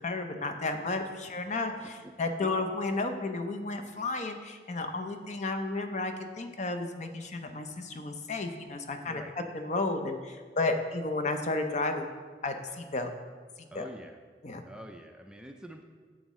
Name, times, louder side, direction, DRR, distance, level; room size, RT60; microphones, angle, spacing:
voice 1, 0.0-12.1 12.4-13.1 13.7-13.9 14.4-14.6, left 3 dB, 40° left, 6 dB, 0.6 m, -33 dB
voice 2, 1.8-2.1 2.4-2.5 9.1-9.3 13.7-14.2 14.6-15.8, right 1 dB, 5° right, 3 dB, 0.4 m, -46 dB
8.9 x 7.4 x 3.1 m, 1.5 s
head